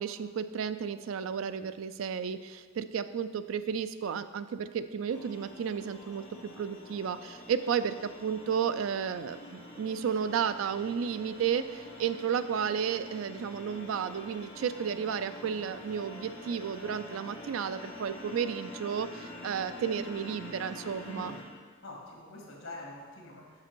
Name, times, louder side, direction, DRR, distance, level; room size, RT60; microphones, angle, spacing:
voice 1, 0.0-21.3, right 7 dB, 80° right, 12 dB, 0.3 m, -33 dB
sound 1, 5.1-21.4, left 1 dB, 40° left, 1.5 m, -46 dB
voice 2, 21.1-21.4 21.8-23.6, left 1 dB, 80° left, -2 dB, 1.8 m, -45 dB
6.7 x 5.1 x 4.6 m, 1.5 s
head